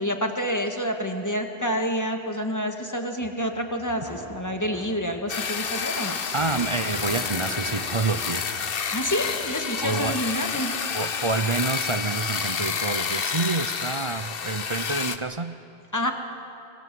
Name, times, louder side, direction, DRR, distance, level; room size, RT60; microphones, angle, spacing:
voice 1, 0.0-6.2 8.9-10.9 15.9-16.1, equal, 15° left, 4 dB, 1.9 m, -28 dB
sound 1, 3.2-11.3, right 1 dB, 30° left, 4.2 m, -43 dB
sound 2, 5.3-15.2, left 6 dB, 60° left, 1.2 m, -29 dB
voice 2, 6.3-8.5 9.8-10.2 10.9-15.6, right 3 dB, 30° right, 12 dB, 0.7 m, -28 dB
24.5 x 24.0 x 7.8 m, 2.7 s
omnidirectional pair, 1.1 m